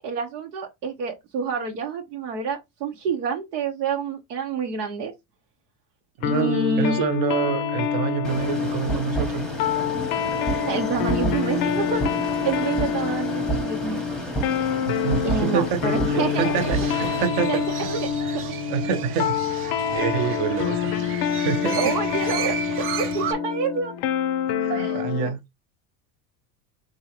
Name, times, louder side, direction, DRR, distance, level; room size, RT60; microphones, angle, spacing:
voice 1, 0.0-5.1 6.2-7.0 10.6-12.0 12.4-14.0 15.2-16.7 17.5-17.6 21.7-22.6 23.0-23.9 24.7-25.1, right 5 dB, 90° right, 1.0 m, -28 dB
sound 1, 6.2-25.4, left 8 dB, 50° left, 0.4 m, -26 dB
voice 2, 6.3-9.5 14.8-18.4 18.7-20.9 21.4-21.9 24.6-25.4, right 7 dB, 50° right, 0.7 m, -27 dB
sound 2, 8.2-17.2, right 2 dB, ahead, 0.8 m, -30 dB
Crow, 16.6-23.3, right 9 dB, 30° right, 0.4 m, -34 dB
3.6 x 2.7 x 2.9 m
supercardioid pair, 110°, 46 cm